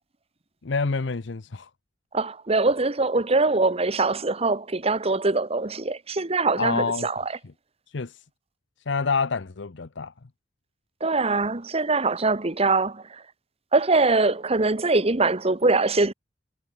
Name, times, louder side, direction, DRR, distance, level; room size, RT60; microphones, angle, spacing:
voice 1, 0.6-1.7 6.6-7.1 7.9-8.1 8.9-10.1, left 4 dB, 70° left, 0.8 m, -27 dB
voice 2, 2.1-7.3 11.0-13.0 13.7-16.1, right 3 dB, 35° right, 1.3 m, -23 dB
head